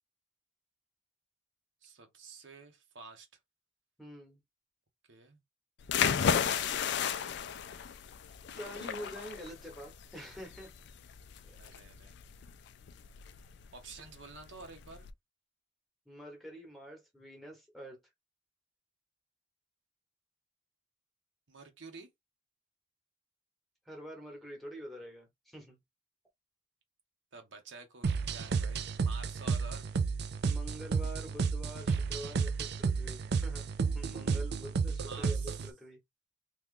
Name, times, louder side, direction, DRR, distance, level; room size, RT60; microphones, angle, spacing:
voice 1, 1.8-3.3 5.1-5.4 6.2-6.8 11.6-12.1 13.7-15.1 21.5-22.1 27.3-29.8 35.0-35.5, right 4 dB, 75° right, 1.0 m, -50 dB
voice 2, 4.0-4.4 8.5-10.7 11.5-11.6 16.1-18.0 23.9-25.8 30.4-36.0, equal, ahead, 1.1 m, -46 dB
sound 1, 5.8-15.1, left 7 dB, 65° left, 0.4 m, -34 dB
sound 2, 28.0-35.7, right 5 dB, 60° right, 0.4 m, -32 dB
3.0 x 2.3 x 3.6 m
head